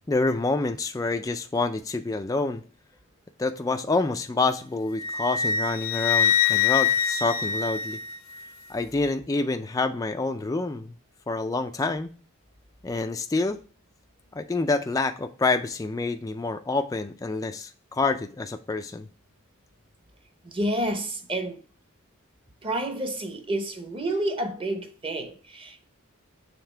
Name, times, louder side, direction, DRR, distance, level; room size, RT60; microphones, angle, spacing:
voice 1, 0.1-2.6 3.4-8.0 8.7-10.9 11.3-12.1 12.8-13.6 14.3-19.1, left 3 dB, 15° left, 0.3 m, -27 dB
Wind instrument woodwind instrument, 5.0-8.5, left 8 dB, 70° left, 0.6 m, -24 dB
voice 2, 20.4-21.6 22.6-25.9, right 1 dB, 25° right, 0.8 m, -29 dB
6.7 x 3.6 x 4.4 m
head